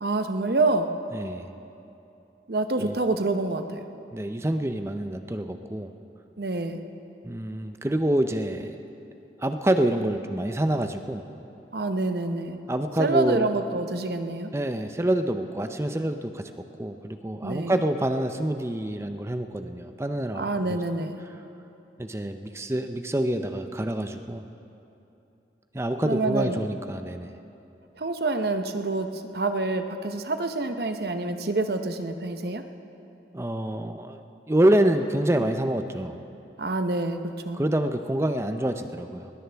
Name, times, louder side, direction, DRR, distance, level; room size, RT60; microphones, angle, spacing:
voice 1, 0.0-0.9 2.5-3.8 6.4-6.8 11.7-12.6 13.0-14.5 17.4-17.8 20.3-21.2 26.0-26.6 28.0-32.6 36.6-37.2 37.4-37.6, right 2 dB, 65° right, 7 dB, 0.8 m, -27 dB
voice 2, 1.1-1.5 2.8-3.0 4.1-5.9 7.2-8.8 9.4-11.2 12.7-13.5 14.5-20.4 20.7-20.8 22.0-24.4 25.7-27.3 33.3-36.2 37.5-39.3, right 1 dB, 15° right, 7 dB, 0.5 m, -27 dB
20.5 x 20.0 x 3.5 m, 2.8 s
head